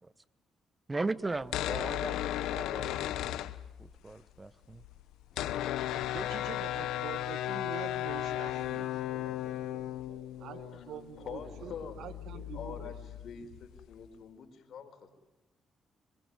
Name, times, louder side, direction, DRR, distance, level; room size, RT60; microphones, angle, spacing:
voice 1, 0.9-3.5 3.8-4.8, right 3 dB, 25° right, 17 dB, 1.0 m, -38 dB
sound 1, 1.4-4.1 4.4-4.5 4.6-14.1, left 13 dB, 90° left, 0.9 m, -36 dB
Bowed string instrument, 5.3-10.0, left 3 dB, 35° left, 4.1 m, -53 dB
voice 2, 6.1-9.3 10.4-12.9, right 9 dB, 80° right, 13 dB, 1.5 m, -46 dB
voice 3, 7.8-11.0 11.3-12.2, right 4 dB, 55° right, 3 dB, 6.3 m, -55 dB
voice 4, 11.2-11.9 12.3-15.1, left 6 dB, 65° left, 6 dB, 4.7 m, -45 dB
26.5 x 21.5 x 9.8 m, 0.99 s
cardioid pair, 85°, 0 cm